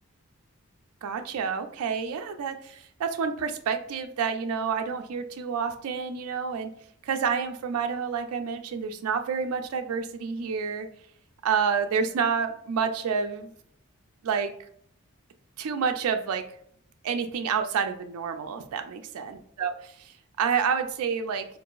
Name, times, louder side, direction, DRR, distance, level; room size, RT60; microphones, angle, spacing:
voice 1, 1.0-6.7 7.0-10.9 11.4-13.5 14.2-14.5 15.6-16.4 17.0-20.1 20.4-21.5, right 6 dB, 85° right, 7 dB, 0.3 m, -29 dB
3.8 x 2.5 x 2.3 m, 0.65 s
head